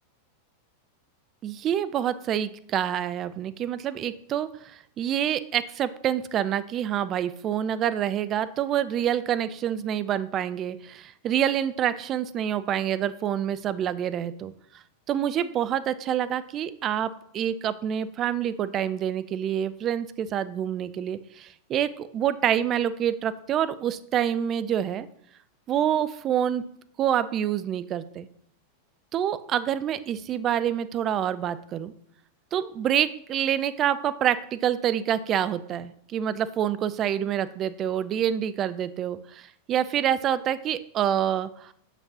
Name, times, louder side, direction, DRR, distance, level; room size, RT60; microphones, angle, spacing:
voice 1, 1.4-14.5 15.1-25.1 25.7-26.6 27.0-28.3 29.1-31.9 32.5-41.7, right 10 dB, 30° right, 14 dB, 0.4 m, -27 dB
6.9 x 6.0 x 2.8 m, 0.67 s
figure-of-eight pair, 90°, 0 cm